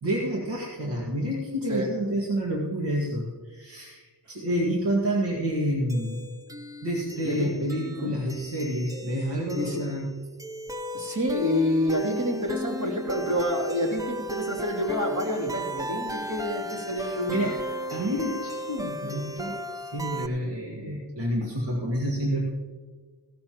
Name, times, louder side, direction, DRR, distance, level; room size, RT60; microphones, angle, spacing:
voice 1, 0.0-6.2 6.8-10.2 17.0-17.6 17.9-22.4, equal, 85° right, -3 dB, 2.0 m, -29 dB
sound 1, 5.9-20.3, right 1 dB, 10° right, 0.7 m, -36 dB
voice 2, 10.9-17.5, left 1 dB, 45° right, -1 dB, 3.0 m, -28 dB
17.5 x 13.5 x 3.0 m, 1.5 s
wide cardioid pair, 130°, 41 cm